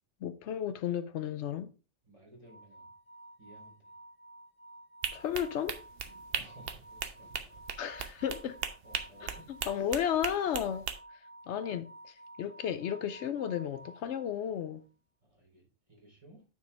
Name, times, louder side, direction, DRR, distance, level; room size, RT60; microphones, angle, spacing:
voice 1, 0.2-1.7 5.1-5.8 7.8-8.6 9.2-9.3 9.7-10.8 11.5-14.8, left 9 dB, 75° left, 0.9 m, -33 dB
voice 2, 2.0-2.9 3.4-3.9 6.3-7.6 8.0-8.2 8.8-10.2 11.4-11.5 15.2-16.5, right 1 dB, 30° right, 3.8 m, -57 dB
sound 1, 2.5-14.7, right 1 dB, 25° left, 1.2 m, -53 dB
sound 2, 5.0-11.0, right 7 dB, 60° right, 1.0 m, -38 dB
9.3 x 4.8 x 3.3 m
omnidirectional pair, 1.2 m